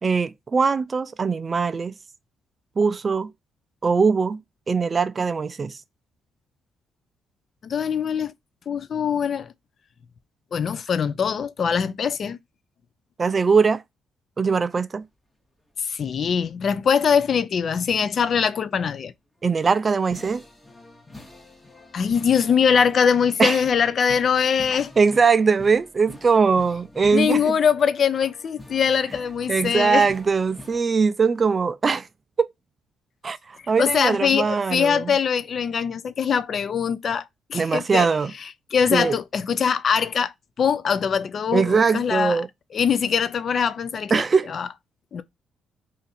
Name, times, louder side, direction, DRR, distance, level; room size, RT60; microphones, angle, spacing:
voice 1, 0.0-1.9 2.8-3.3 3.8-4.4 4.7-5.8 13.2-13.8 14.4-15.0 19.4-20.4 23.4-23.6 25.0-27.5 29.5-32.1 32.4-32.5 33.2-35.1 37.5-38.3 38.9-39.1 41.5-42.5 44.1-44.5, right 5 dB, 35° right, 0.3 m, -21 dB
voice 2, 7.6-8.3 8.7-9.5 10.5-12.4 15.8-19.1 21.9-24.9 27.1-30.1 33.8-37.2 37.5-38.1 38.7-42.4 42.7-44.2 44.5-44.7 45.1-45.2, left 7 dB, 50° left, 0.4 m, -22 dB
sound 1, 19.4-30.8, left 2 dB, 15° left, 0.9 m, -46 dB
2.7 x 2.4 x 4.1 m
cardioid pair, 90°, 0 cm